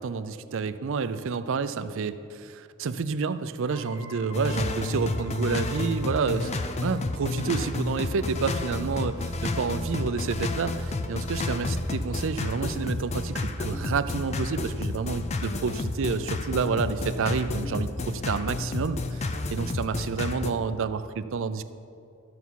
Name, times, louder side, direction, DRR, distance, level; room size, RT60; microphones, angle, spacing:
voice 1, 0.0-21.6, right 5 dB, 65° right, 12 dB, 0.4 m, -29 dB
sound 1, 3.7-15.1, left 3 dB, 90° left, 2.2 m, -52 dB
sound 2, 4.3-20.5, left 2 dB, 30° left, 0.5 m, -30 dB
12.5 x 6.9 x 4.6 m, 2.4 s
head